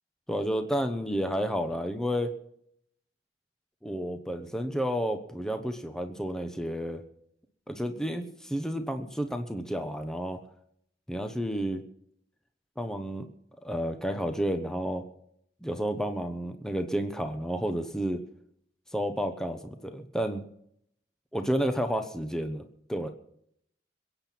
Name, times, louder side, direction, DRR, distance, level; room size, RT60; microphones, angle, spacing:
voice 1, 0.3-2.3 3.8-7.0 7.7-10.4 11.1-11.8 12.8-13.3 13.6-15.0 15.6-18.2 18.9-20.4 21.3-22.6 22.9-23.1, equal, 5° left, 7 dB, 1.0 m, -31 dB
22.0 x 8.9 x 5.9 m, 0.70 s
head